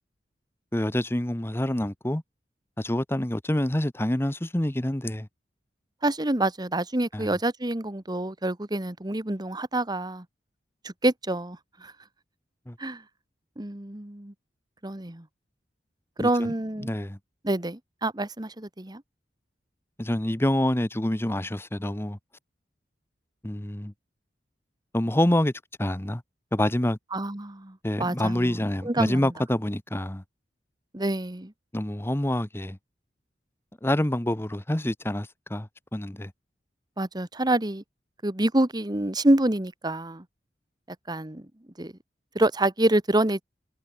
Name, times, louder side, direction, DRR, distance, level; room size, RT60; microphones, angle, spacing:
voice 1, 0.7-2.2 2.8-5.3 7.1-7.3 12.7-12.8 16.2-16.5 16.8-17.2 20.0-22.2 23.4-23.9 24.9-25.5 25.8-26.2 26.5-27.0 27.8-30.2 31.7-32.8 33.8-36.3, left 1 dB, 15° left, 1.1 m, -27 dB
voice 2, 6.0-10.2 10.8-11.9 12.8-13.0 13.6-14.3 14.8-15.2 16.2-16.9 17.4-19.0 27.1-29.3 30.9-31.5 37.0-37.8 38.2-40.2 41.1-41.5 41.8-41.9 42.3-43.4, right 1 dB, 25° right, 1.5 m, -27 dB
head